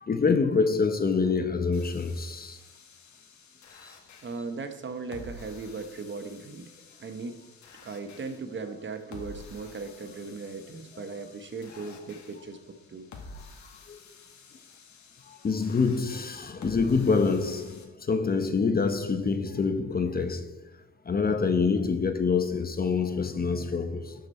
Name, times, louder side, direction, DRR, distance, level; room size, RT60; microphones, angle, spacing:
voice 1, 0.0-2.6 13.9-14.0 15.4-20.5 21.1-24.1, left 4 dB, 30° left, 0.9 m, -26 dB
sound 1, 1.7-17.8, left 3 dB, 70° left, 1.8 m, -50 dB
voice 2, 4.2-6.7 7.0-7.4 7.8-13.1, right 4 dB, 40° right, 1.1 m, -38 dB
11.5 x 6.6 x 4.3 m
cardioid pair, 90°, 30 cm